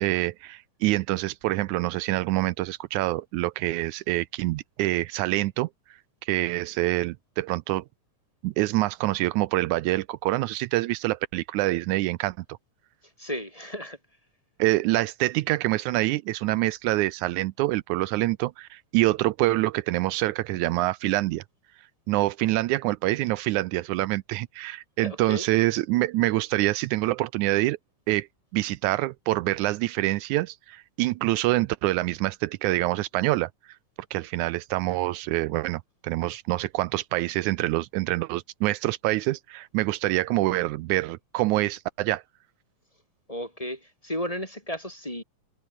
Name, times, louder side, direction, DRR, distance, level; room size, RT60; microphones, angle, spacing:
voice 1, 0.0-5.7 6.2-7.9 8.4-12.6 14.6-21.4 22.1-27.8 28.1-28.3 28.5-33.5 34.1-42.2, right 18 dB, 80° right, 2.0 m, -26 dB
voice 2, 13.0-14.0 25.0-25.6 43.3-45.2, equal, 10° left, 3.6 m, -34 dB
omnidirectional pair, 3.5 m